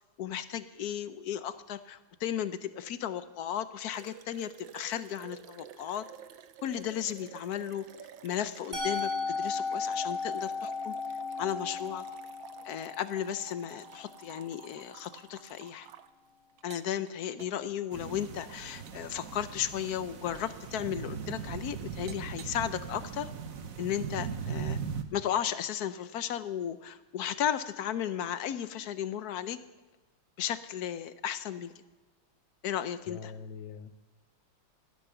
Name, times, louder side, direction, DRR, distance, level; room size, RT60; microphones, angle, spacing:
voice 1, 0.2-6.1 6.6-7.8 8.2-10.9 11.4-12.0 12.6-15.9 16.6-23.3 23.8-24.8 25.1-29.6 30.4-31.7 32.6-33.3, left 10 dB, 65° left, 12 dB, 1.0 m, -35 dB
sound 1, 3.9-16.1 16.6-17.1 17.4-17.7 18.2-18.3 18.9-19.1 19.7-19.9 20.3-20.7 21.4-21.5 22.1-22.8, right 10 dB, 75° right, 1.5 m, -51 dB
Musical instrument, 8.7-14.6, left 4 dB, 25° right, 4.1 m, -36 dB
sound 2, 17.9-25.0, right 6 dB, 50° right, 1.3 m, -39 dB
voice 2, 33.1-34.0, left 6 dB, 80° left, 12 dB, 1.6 m, -43 dB
16.5 x 12.0 x 6.8 m, 1.2 s
omnidirectional pair, 2.2 m